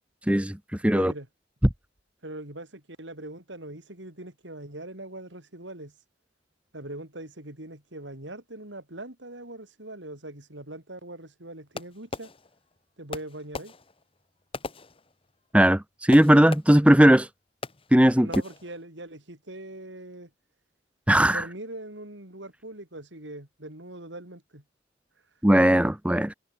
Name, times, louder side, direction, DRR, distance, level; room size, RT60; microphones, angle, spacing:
voice 1, 0.3-0.6 0.8-1.1 15.5-17.3 17.9-18.3 21.1-21.4 25.4-26.3, equal, 5° right, 0.8 m, -18 dB
voice 2, 0.9-1.3 2.2-5.9 6.7-12.3 13.0-13.7 18.2-20.3 21.3-24.6, right 1 dB, 75° right, 5.0 m, -41 dB
Fireworks, 11.8-12.8 13.1-15.5 16.1-17.0 17.6-18.1 18.3-18.8, left 3 dB, 30° left, 1.4 m, -40 dB
head